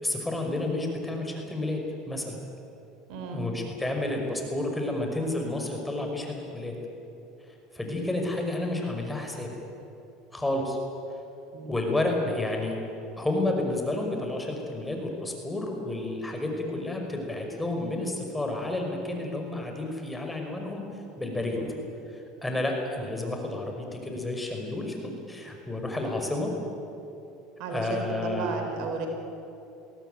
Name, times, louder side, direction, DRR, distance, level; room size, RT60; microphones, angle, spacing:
voice 1, 0.0-1.8 2.1-2.4 3.3-6.7 7.7-9.5 10.3-10.8 11.6-12.8 13.2-20.8 21.2-21.6 22.1-26.5 27.7-28.6, left 2 dB, 10° left, 2 dB, 5.6 m, -30 dB
voice 2, 3.1-3.5 11.5-11.8 21.6-21.7 27.6-29.1, right 4 dB, 65° right, 4 dB, 4.0 m, -34 dB
22.0 x 17.0 x 9.3 m, 2.9 s
hypercardioid pair, 90°, 0 cm